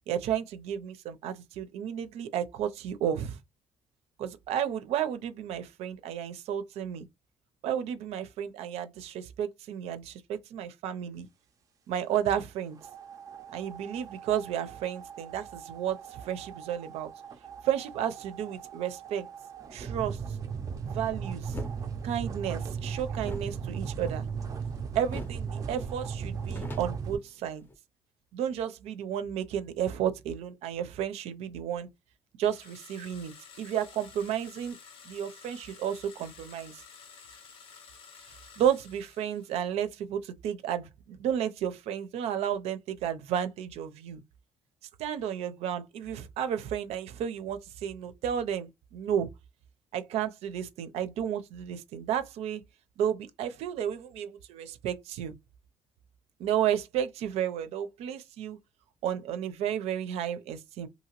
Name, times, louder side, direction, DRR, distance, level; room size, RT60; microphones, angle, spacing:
voice 1, 0.1-3.4 4.2-7.1 7.6-11.3 11.9-12.8 13.5-17.1 17.6-19.3 19.7-20.2 20.8-21.6 22.0-24.3 24.9-27.6 28.3-31.9 32.4-34.8 35.1-36.8 38.6-44.2 45.0-49.3 49.9-52.6 53.0-55.3 56.4-58.6 59.0-60.9, right 9 dB, 85° right, 0.5 m, -32 dB
sound 1, 12.8-27.2, right 6 dB, 35° right, 0.4 m, -38 dB
sound 2, 21.5-21.8 23.2-24.7 25.1-25.5 25.8-25.9 26.2-27.7, left 1 dB, 20° left, 0.5 m, -42 dB
sound 3, 32.4-39.7, left 6 dB, 60° left, 0.6 m, -52 dB
2.8 x 2.6 x 2.9 m
cardioid pair, 150°, 10 cm